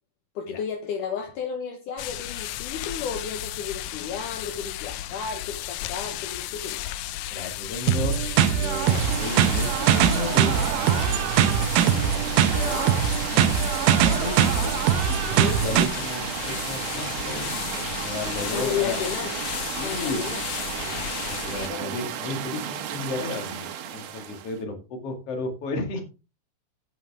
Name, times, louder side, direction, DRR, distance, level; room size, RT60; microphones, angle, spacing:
voice 1, 0.4-6.8 12.4-13.0 15.4-15.7 18.5-19.4 19.8-20.4 21.7-22.0, left 7 dB, 70° left, 3 dB, 2.7 m, -33 dB
sound 1, 2.0-21.7, left 14 dB, 85° left, 1.6 m, -34 dB
voice 2, 7.3-8.1 8.6-11.7 12.2-12.7 13.0-13.5 14.0-19.0 19.8-20.2 20.8-21.2 21.4-26.0, left 3 dB, 45° left, 4 dB, 2.9 m, -34 dB
sound 2, 7.9-15.9, right 9 dB, 90° right, 2.7 m, -22 dB
sound 3, 8.9-24.6, right 9 dB, 70° right, 2.6 m, -33 dB
10.0 x 9.5 x 3.6 m, 0.29 s
omnidirectional pair, 4.1 m